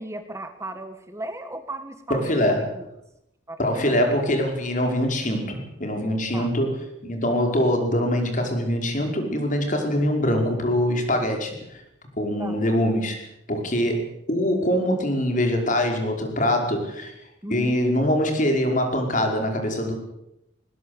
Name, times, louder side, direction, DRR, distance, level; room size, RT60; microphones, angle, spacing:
voice 1, 0.0-2.8 3.5-4.0 6.3-6.5 12.4-12.5 17.4-17.8, right 1 dB, 15° right, 8 dB, 1.4 m, -36 dB
voice 2, 2.1-2.7 3.6-6.8 7.0-11.8 12.2-17.2 17.5-19.9, left 1 dB, 40° left, 3 dB, 5.2 m, -23 dB
20.5 x 20.5 x 8.1 m, 0.83 s
head